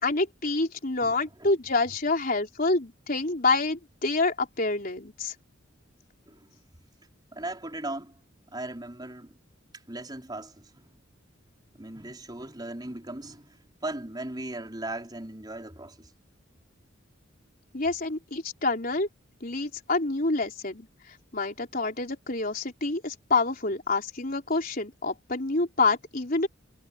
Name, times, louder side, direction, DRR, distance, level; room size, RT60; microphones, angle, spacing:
voice 1, 0.0-5.3 17.7-19.1 19.4-20.9 21.3-26.5, left 3 dB, 45° left, 4.1 m, -27 dB
voice 2, 1.0-1.5 6.3-6.5 7.3-8.2 8.5-9.3 9.9-11.0 11.7-16.1, right 2 dB, 20° right, 4.8 m, -38 dB
head